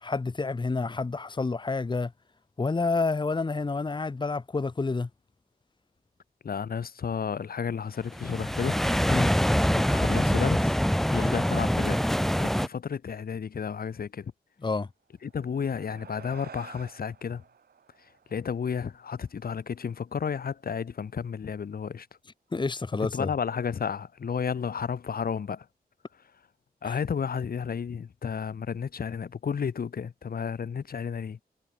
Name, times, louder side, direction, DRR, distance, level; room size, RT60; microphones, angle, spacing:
voice 1, 0.0-2.1 2.6-5.1 9.1-9.3 11.1-11.3 14.6-14.9 22.5-23.3 26.8-27.0, left 3 dB, 30° left, 1.6 m, -29 dB
voice 2, 6.4-8.8 9.7-10.8 11.2-12.0 12.4-14.3 15.2-17.4 18.3-22.1 23.0-25.7 26.8-31.4, left 6 dB, 70° left, 2.5 m, -32 dB
sound 1, 8.1-12.7, equal, ahead, 0.5 m, -24 dB
sound 2, 15.1-19.9, right 7 dB, 80° right, 4.1 m, -51 dB
wide cardioid pair, 130°, 16 cm